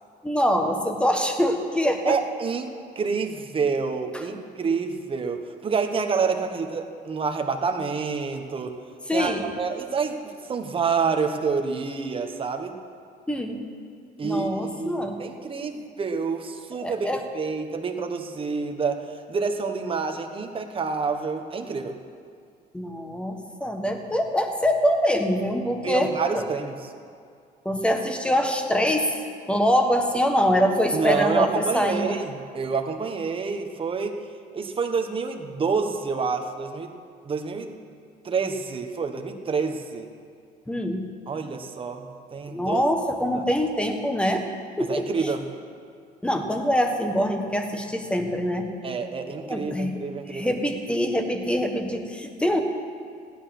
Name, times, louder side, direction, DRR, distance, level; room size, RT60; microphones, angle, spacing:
voice 1, 0.2-2.2 9.1-9.4 13.3-13.6 14.2-15.2 15.6-15.7 16.8-17.2 22.7-26.5 27.6-29.2 29.5-32.2 40.7-41.1 42.5-44.4 44.8-45.3 46.2-48.7 49.4-49.9 50.3-52.6, equal, 5° left, 4 dB, 1.5 m, -24 dB
voice 2, 2.0-8.8 9.1-12.8 14.2-22.0 25.8-26.7 30.9-34.2 34.5-36.9 37.2-37.8 38.2-40.1 41.3-42.8 44.9-45.4 48.8-50.5, right 5 dB, 30° right, 5 dB, 1.3 m, -28 dB
16.0 x 10.5 x 6.1 m, 2.3 s
cardioid pair, 110°, 17 cm